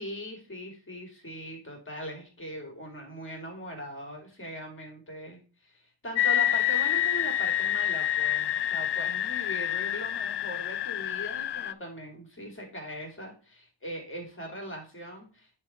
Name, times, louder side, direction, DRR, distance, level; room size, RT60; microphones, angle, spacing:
voice 1, 0.0-15.5, equal, 25° left, 1 dB, 2.8 m, -40 dB
sound 1, 6.1-11.7, left 12 dB, 65° left, 0.5 m, -28 dB
9.9 x 3.5 x 4.3 m, 0.36 s
wide cardioid pair, 160°, 45 cm